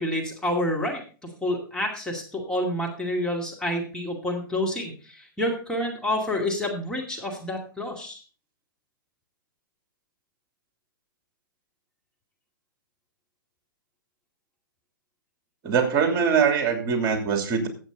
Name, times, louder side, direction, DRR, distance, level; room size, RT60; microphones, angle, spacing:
voice 1, 0.0-8.2, left 1 dB, 5° left, -1 dB, 2.3 m, -28 dB
voice 2, 15.6-17.7, right 6 dB, 35° right, 5 dB, 3.0 m, -22 dB
14.5 x 8.0 x 3.9 m, 0.38 s
hypercardioid pair, 120°, 12 cm